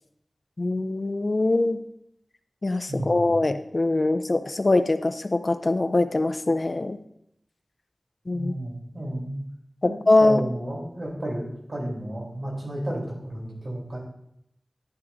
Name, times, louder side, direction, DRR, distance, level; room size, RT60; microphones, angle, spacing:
voice 1, 0.6-1.8 2.6-7.0 8.3-8.5 9.8-10.4, left 2 dB, 50° left, 10 dB, 0.6 m, -23 dB
voice 2, 2.9-3.2 8.3-9.4 10.2-14.0, right 1 dB, 60° right, -2 dB, 3.5 m, -32 dB
11.5 x 9.8 x 2.7 m, 0.75 s
wide cardioid pair, 65°, 0 cm